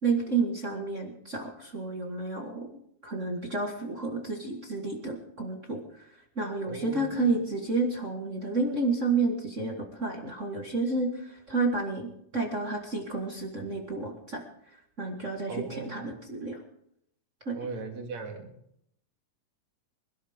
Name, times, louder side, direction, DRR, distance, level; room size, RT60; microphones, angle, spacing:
voice 1, 0.0-2.7 3.0-5.8 6.3-14.4 15.0-16.6 17.4-17.6, right 3 dB, 40° right, 1 dB, 1.1 m, -30 dB
voice 2, 6.6-7.4 15.5-16.0 17.5-18.5, right 4 dB, 55° right, 3 dB, 3.4 m, -38 dB
25.5 x 12.5 x 3.6 m, 0.74 s
omnidirectional pair, 3.9 m